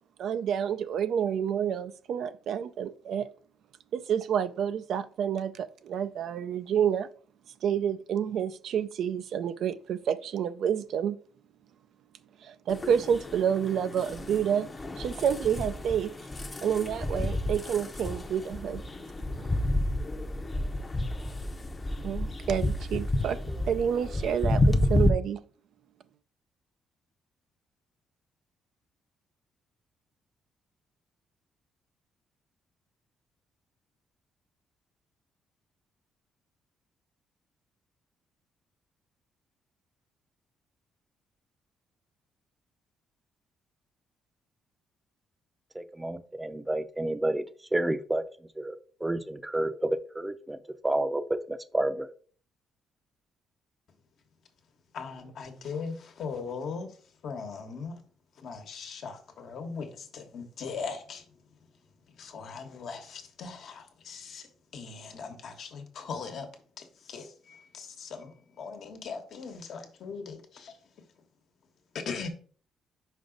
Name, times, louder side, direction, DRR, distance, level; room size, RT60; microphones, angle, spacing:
voice 1, 0.2-3.3 3.9-7.1 7.6-11.2 12.4-14.7 15.0-16.1 16.6-18.8 22.0-25.4, right 8 dB, 70° right, 0.3 m, -29 dB
sound 1, 12.7-25.1, left 1 dB, 25° left, 0.7 m, -30 dB
voice 2, 45.7-47.4 47.7-48.2 48.6-50.6 50.8-52.1, right 1 dB, 10° right, 0.6 m, -30 dB
voice 3, 54.9-56.9 57.2-58.0 58.4-59.9 60.1-61.2 62.2-64.4 64.7-66.5 67.1-67.3 67.7-70.7 72.0-72.3, left 5 dB, 65° left, 1.2 m, -39 dB
5.3 x 4.8 x 3.9 m
cardioid pair, 90°, 0 cm